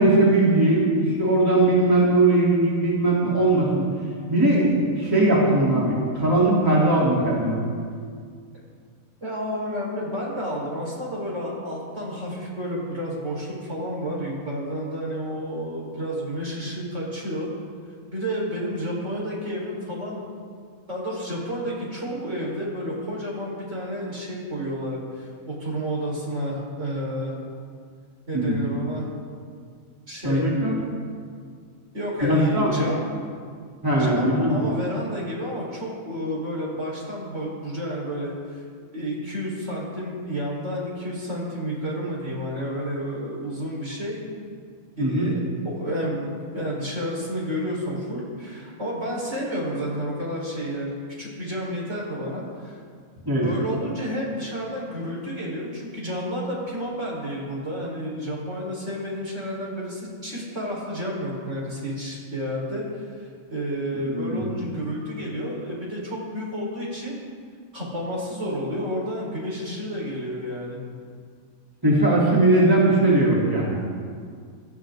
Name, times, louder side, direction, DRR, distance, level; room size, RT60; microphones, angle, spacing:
voice 1, 0.0-3.9 4.3-7.6 28.3-28.6 30.2-30.7 32.2-32.9 33.8-34.5 45.0-45.3 53.3-53.4 64.1-64.5 71.8-73.8, right 2 dB, 15° right, -7 dB, 3.8 m, -20 dB
voice 2, 9.2-17.5 18.1-20.3 20.9-27.3 28.3-29.1 30.1-30.4 31.9-33.0 33.8-38.6 38.9-44.3 45.0-45.3 45.6-52.8 53.4-67.2 67.7-70.8, equal, 55° right, -4 dB, 5.1 m, -30 dB
25.5 x 14.5 x 3.9 m, 2.1 s
omnidirectional pair, 1.5 m